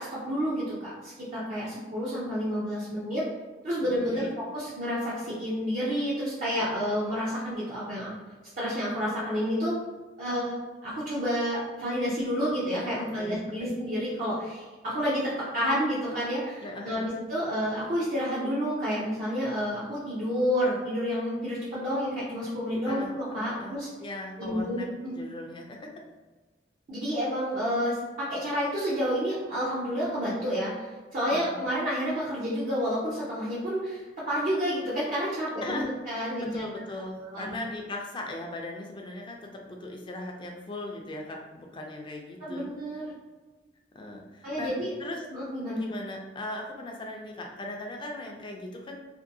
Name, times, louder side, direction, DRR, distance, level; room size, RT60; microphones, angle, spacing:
voice 1, 0.0-3.2 3.6-8.2 8.6-9.8 10.2-10.5 10.8-23.9 24.4-25.2 26.9-28.0 28.3-30.9 31.1-36.6 37.3-37.6 42.5-43.1 44.4-44.9 45.3-45.8, equal, 45° right, -8 dB, 0.6 m, -30 dB
voice 2, 3.8-4.3 13.2-13.7 16.6-17.1 22.9-25.9 31.3-31.6 35.6-36.0 36.5-42.7 43.9-44.7 45.0-45.2 45.7-49.0, left 2 dB, 25° left, 1 dB, 0.4 m, -39 dB
2.6 x 2.6 x 2.6 m, 1.3 s
head